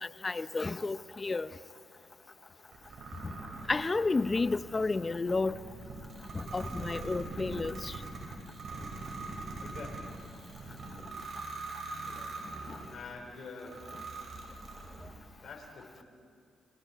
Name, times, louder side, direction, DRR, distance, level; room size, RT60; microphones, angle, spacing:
voice 1, 0.2-1.5 3.7-5.6 6.3-7.9, left 3 dB, 30° left, 0.7 m, -31 dB
sound 1, 2.7-13.0 13.6-15.2, right 3 dB, 60° right, 5.9 m, -43 dB
voice 2, 9.6-10.1 12.0-12.3 12.9-13.8 15.4-16.0, left 4 dB, 60° left, 5.4 m, -46 dB
30.0 x 23.0 x 4.7 m
supercardioid pair, 60°, 0 cm